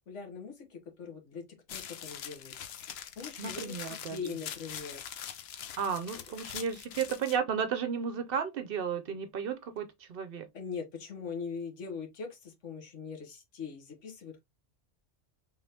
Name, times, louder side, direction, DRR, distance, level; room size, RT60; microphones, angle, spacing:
voice 1, 0.1-2.5 3.2-5.3 6.1-6.2 10.5-14.4, left 5 dB, 90° left, 1.4 m, -42 dB
sound 1, 1.7-7.4, left 9 dB, 65° left, 0.8 m, -43 dB
voice 2, 3.4-4.2 5.8-10.5, right 7 dB, 60° right, 0.7 m, -33 dB
3.6 x 3.3 x 2.7 m
omnidirectional pair, 1.2 m